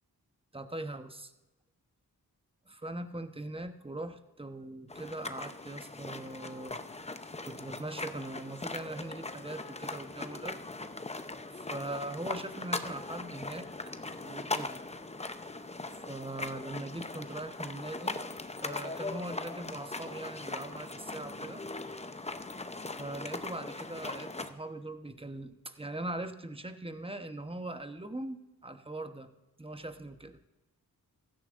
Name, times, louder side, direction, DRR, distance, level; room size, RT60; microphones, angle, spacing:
voice 1, 0.5-1.3 2.7-6.8 7.4-10.6 11.5-13.7 14.2-14.8 16.1-18.2 18.6-21.6 23.0-29.3 29.6-30.4, right 2 dB, 15° right, 8 dB, 1.0 m, -41 dB
sound 1, 4.9-24.5, left 3 dB, 15° left, 0.7 m, -40 dB
16.0 x 12.5 x 2.6 m, 1.1 s
cardioid pair, 55°, 38 cm